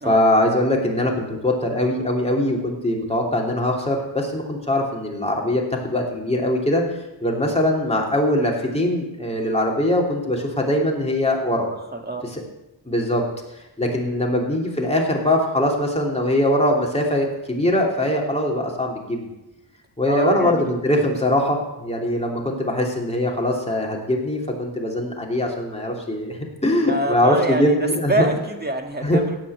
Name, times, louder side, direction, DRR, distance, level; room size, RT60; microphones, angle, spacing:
voice 1, 0.0-6.8 7.2-11.7 12.3-12.4 12.9-13.2 13.8-19.3 20.0-28.3 29.0-29.2, left 1 dB, 15° left, -1 dB, 2.9 m, -22 dB
voice 2, 11.7-12.2 20.1-20.7 26.8-29.3, right 2 dB, 20° right, 4 dB, 1.9 m, -26 dB
16.5 x 5.9 x 8.5 m, 0.96 s
wide cardioid pair, 110°, 46 cm